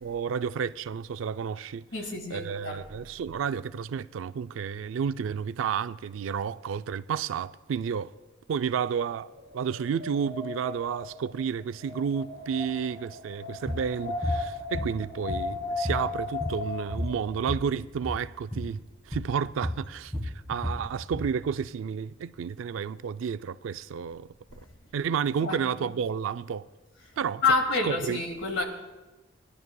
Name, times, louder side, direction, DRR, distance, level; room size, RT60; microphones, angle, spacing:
voice 1, 0.0-1.8 2.3-8.1 8.5-9.3 9.5-24.3 24.9-26.7 27.2-27.4 27.8-28.2, right 7 dB, 85° right, 0.3 m, -31 dB
voice 2, 1.9-2.8 25.4-25.9 27.4-28.6, left 3 dB, 80° left, 1.7 m, -28 dB
Wind, 9.2-17.1, left 4 dB, 50° left, 2.6 m, -37 dB
sound 1, 13.7-13.8 14.2-14.4 14.7-15.6 15.8-17.7 18.0-18.2 18.5-18.7 19.1-19.3 19.6-21.3, left 1 dB, 5° left, 1.4 m, -32 dB
20.0 x 11.0 x 2.2 m
head